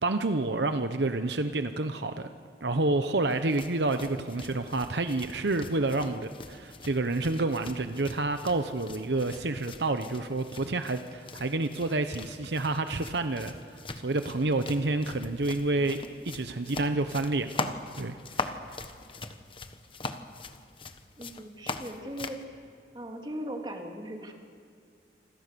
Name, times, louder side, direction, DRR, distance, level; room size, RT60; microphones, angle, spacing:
voice 1, 0.0-2.3 2.6-16.0 16.2-18.6, right 2 dB, 75° right, 8 dB, 0.9 m, -29 dB
sound 1, 3.3-22.4, left 3 dB, 30° left, 1.2 m, -42 dB
voice 2, 21.2-22.4 22.9-24.3, equal, 25° right, 1 dB, 3.1 m, -38 dB
27.5 x 26.5 x 6.9 m, 2.2 s
head